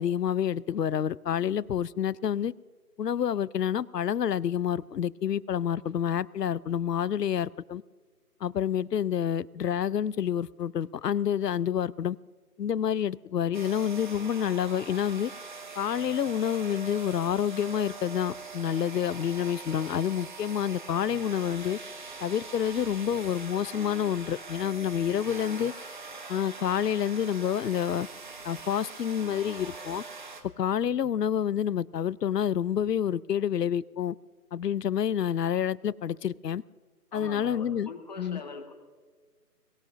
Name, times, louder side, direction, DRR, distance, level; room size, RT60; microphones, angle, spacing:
voice 1, 0.0-2.5 3.0-7.8 8.4-12.2 12.6-15.3 15.8-21.8 22.2-25.7 26.3-28.1 28.4-30.0 30.6-34.1 34.5-36.6 37.1-37.9 38.2-38.4, left 9 dB, 80° left, 0.6 m, -28 dB
sound 1, 13.5-30.4, right 3 dB, 30° right, 1.2 m, -43 dB
voice 2, 37.1-38.7, left 4 dB, 25° left, 1.4 m, -42 dB
23.0 x 15.5 x 2.5 m
figure-of-eight pair, 160°, 48 cm